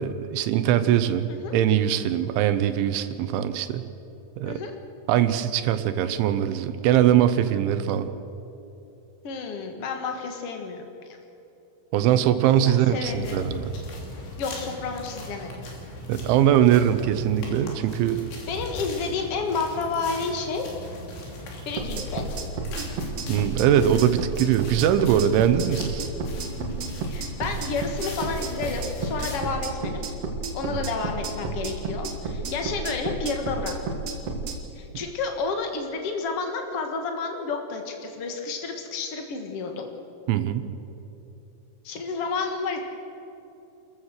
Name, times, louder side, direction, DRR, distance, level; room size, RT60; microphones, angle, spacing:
voice 1, 0.0-3.8 4.4-4.6 5.1-8.1 11.9-13.7 16.1-18.2 23.3-26.1 40.3-40.7, right 10 dB, 80° right, 11 dB, 3.2 m, -22 dB
voice 2, 9.2-11.2 12.6-13.5 14.4-15.5 18.5-20.6 21.6-22.4 27.0-30.1 30.5-33.7 34.7-39.9 41.8-42.8, left 4 dB, 85° left, 3 dB, 1.3 m, -30 dB
sound 1, 12.9-29.4, left 1 dB, 65° left, 5.2 m, -38 dB
sound 2, 21.8-34.6, right 3 dB, 60° right, 1.6 m, -31 dB
29.0 x 14.5 x 6.5 m, 2.9 s
omnidirectional pair, 5.6 m